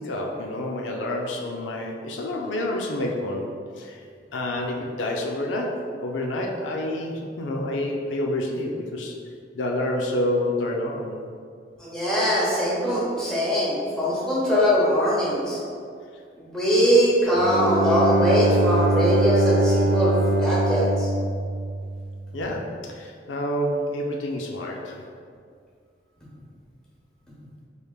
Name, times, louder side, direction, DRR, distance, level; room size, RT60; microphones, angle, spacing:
voice 1, 0.0-4.0 4.3-9.2 9.5-11.3 22.3-25.0, left 1 dB, 90° left, 0 dB, 0.5 m, -28 dB
voice 2, 11.8-15.6 16.4-21.1, equal, 5° left, -9 dB, 1.1 m, -22 dB
Bowed string instrument, 17.3-22.2, right 1 dB, 30° right, 0.6 m, -23 dB
4.9 x 3.3 x 2.3 m, 2.2 s
head